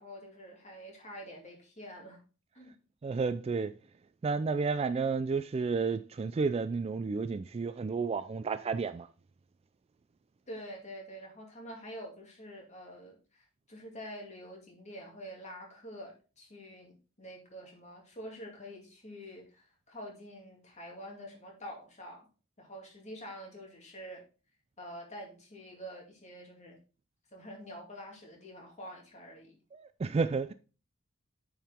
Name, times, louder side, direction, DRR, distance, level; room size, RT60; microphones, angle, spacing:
voice 1, 0.0-2.2 2.6-2.7 10.5-22.3 22.6-24.2 24.8-26.8 27.3-29.6, equal, 35° left, 2.3 m, -47 dB
voice 2, 3.0-3.7 4.2-9.1 29.7-30.5, right 4 dB, 30° right, 0.3 m, -31 dB
9.0 x 4.8 x 3.5 m
head